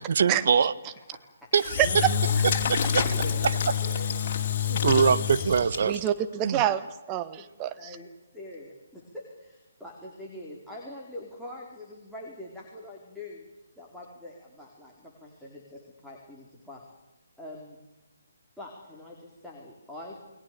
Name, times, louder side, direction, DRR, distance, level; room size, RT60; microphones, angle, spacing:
voice 1, 0.2-0.7 1.5-1.8 2.7-2.8 4.7-6.0 6.4-6.6, right 6 dB, 55° right, 13 dB, 1.3 m, -23 dB
voice 2, 1.1-1.5 3.0-4.1 7.4-7.5 7.8-8.1 8.3-13.4 13.8-16.8 17.4-17.8 18.6-20.2, left 1 dB, ahead, -4 dB, 4.4 m, -44 dB
Engine / Drill, 1.5-6.1, left 7 dB, 35° left, 4.4 m, -27 dB
voice 3, 5.8-8.0, right 12 dB, 20° right, 12 dB, 1.4 m, -27 dB
29.5 x 21.5 x 7.0 m, 1.0 s
figure-of-eight pair, 140°, 0 cm